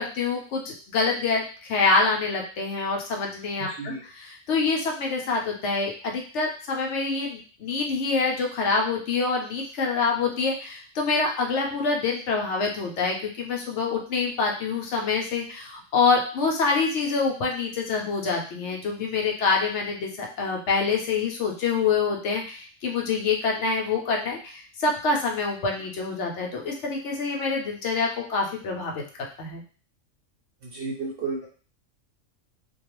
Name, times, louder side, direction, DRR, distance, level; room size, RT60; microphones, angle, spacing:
voice 1, 0.0-29.0 29.4-29.6, left 4 dB, 70° left, 1 dB, 0.8 m, -26 dB
voice 2, 3.7-4.0 30.6-31.5, right 4 dB, 60° right, -2 dB, 0.6 m, -32 dB
2.3 x 2.2 x 3.0 m, 0.38 s
omnidirectional pair, 1.3 m